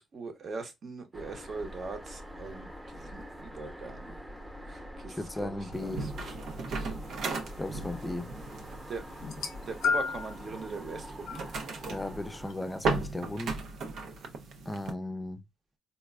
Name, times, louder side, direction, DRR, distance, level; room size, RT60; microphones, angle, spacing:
voice 1, 0.0-4.2 4.6-6.9 8.9-9.0 9.7-11.4, right 4 dB, 50° right, 0.9 m, -41 dB
sound 1, 1.1-12.5, equal, 15° right, 0.9 m, -45 dB
voice 2, 5.2-6.1 7.6-8.3 11.9-13.6 14.7-15.4, left 2 dB, 15° left, 0.5 m, -36 dB
sound 2, 5.7-14.9, right 3 dB, 70° right, 0.5 m, -37 dB
sound 3, 9.2-10.4 11.3-11.5 12.5-12.6, left 5 dB, 80° left, 0.4 m, -31 dB
4.1 x 2.2 x 2.2 m
cardioid pair, 90°, 0 cm